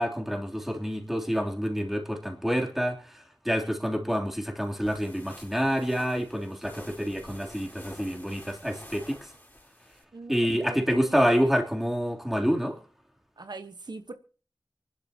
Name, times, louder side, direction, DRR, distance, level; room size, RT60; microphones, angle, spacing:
voice 1, 0.0-3.1 3.4-9.3 10.3-12.8, equal, 5° right, 1 dB, 3.2 m, -27 dB
sound 1, 4.6-10.0, left 1 dB, 25° left, 4.5 m, -49 dB
voice 2, 10.1-11.2 13.4-14.1, right 3 dB, 80° right, 8 dB, 1.2 m, -42 dB
25.0 x 11.5 x 2.9 m, 0.39 s
wide cardioid pair, 55°, 7 cm